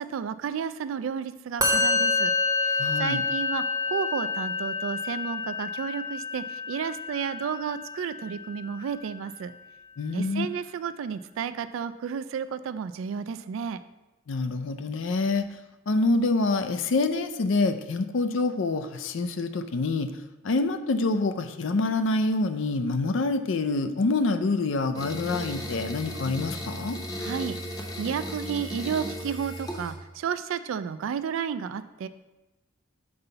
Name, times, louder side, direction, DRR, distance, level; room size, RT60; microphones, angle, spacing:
voice 1, 0.0-2.3 2.6-9.5 10.1-13.8 27.2-32.1, right 7 dB, 80° right, 13 dB, 0.3 m, -32 dB
Musical instrument, 1.6-8.9, left 3 dB, 15° right, 0.7 m, -28 dB
voice 2, 2.8-3.2 10.0-10.5 14.3-15.5 15.9-20.1 20.4-27.0, left 3 dB, 70° left, 10 dB, 0.4 m, -26 dB
sound 1, 25.0-29.9, equal, 20° left, 0.8 m, -36 dB
5.4 x 3.9 x 5.5 m, 1.0 s
head